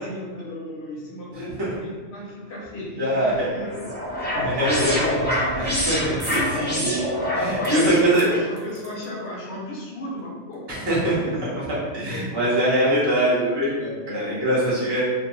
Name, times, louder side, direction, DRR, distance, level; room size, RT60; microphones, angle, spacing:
voice 1, 0.0-3.9 4.3-5.3 6.7-6.9 7.4-11.4 12.1-12.4 14.0-15.0, equal, 65° left, -5 dB, 1.0 m, -35 dB
voice 2, 3.0-3.5 4.4-4.9 5.6-7.0 7.3-8.3 10.7-11.1 11.5-11.7 11.9-15.0, right 1 dB, 25° right, -9 dB, 0.8 m, -23 dB
sound 1, 3.3-8.5, left 1 dB, 15° left, 0.4 m, -26 dB
sound 2, 6.2-6.5 6.9-7.0 7.6-9.3 10.2-10.3 10.5-10.6, right 2 dB, 80° right, 1.0 m, -39 dB
2.6 x 2.2 x 3.0 m, 1.5 s
omnidirectional pair, 1.2 m